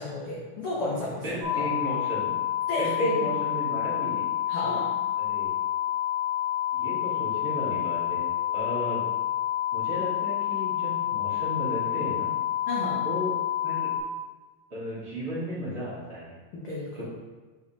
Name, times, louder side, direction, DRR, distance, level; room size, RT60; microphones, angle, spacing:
voice 1, 0.0-1.6 2.7-3.1 4.5-5.0 12.7-13.0 16.5-17.0, left 1 dB, 85° left, -5 dB, 1.2 m, -32 dB
voice 2, 1.2-2.3 2.8-4.2 5.2-5.6 6.7-8.3 8.5-9.0 9.7-12.3 13.0-13.3 13.6-13.9 14.7-16.3 16.9-17.0, equal, 40° right, -10 dB, 1.6 m, -34 dB
sound 1, 1.4-14.0, left 12 dB, 70° right, 2.2 m, -28 dB
10.0 x 3.4 x 2.7 m, 1.3 s
omnidirectional pair, 3.6 m